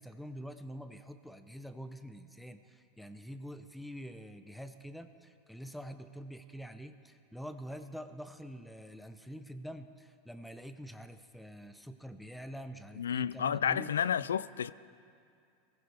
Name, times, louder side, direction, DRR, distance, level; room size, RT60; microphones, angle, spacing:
voice 1, 0.0-13.9 14.2-14.3, equal, ahead, 0.9 m, -46 dB
voice 2, 13.0-14.7, left 8 dB, 85° left, 0.3 m, -31 dB
22.0 x 15.5 x 3.5 m
hypercardioid pair, 95°, 0 cm